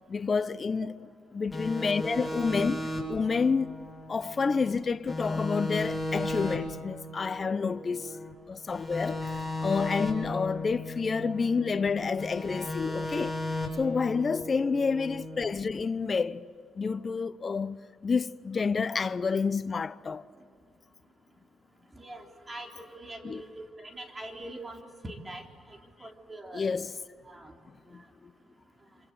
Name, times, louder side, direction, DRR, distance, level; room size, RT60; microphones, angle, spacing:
voice 1, 0.1-3.8 4.1-8.1 8.5-13.4 13.8-16.4 16.8-17.8 18.0-20.2 23.2-23.4 26.5-27.0 27.9-28.0, left 5 dB, 35° left, 0.9 m, -29 dB
sound 1, 1.5-4.8 5.1-8.3 8.7-11.9 12.2-15.4, left 1 dB, ahead, 7.3 m, -35 dB
voice 2, 21.9-26.7 27.2-27.5, right 1 dB, 20° right, 4.0 m, -43 dB
27.0 x 26.5 x 7.9 m
cardioid pair, 90°, 0 cm